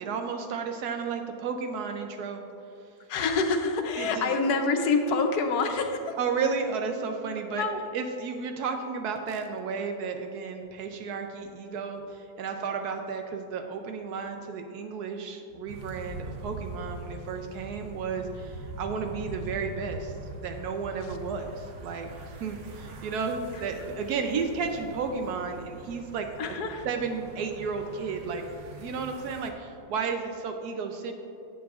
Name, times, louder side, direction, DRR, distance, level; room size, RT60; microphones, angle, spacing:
voice 1, 0.0-2.4 4.0-4.4 6.2-7.6 7.9-20.1 20.4-22.1 22.4-26.3 26.8-28.4 28.8-31.1, right 5 dB, 80° right, 5 dB, 1.1 m, -33 dB
voice 2, 3.1-6.2 7.6-7.8 23.5-23.6 26.4-26.9, left 4 dB, 85° left, 6 dB, 1.3 m, -26 dB
sound 1, 15.7-29.5, right 2 dB, 55° right, 1.0 m, -42 dB
11.0 x 8.5 x 2.4 m, 2.8 s
omnidirectional pair, 1.6 m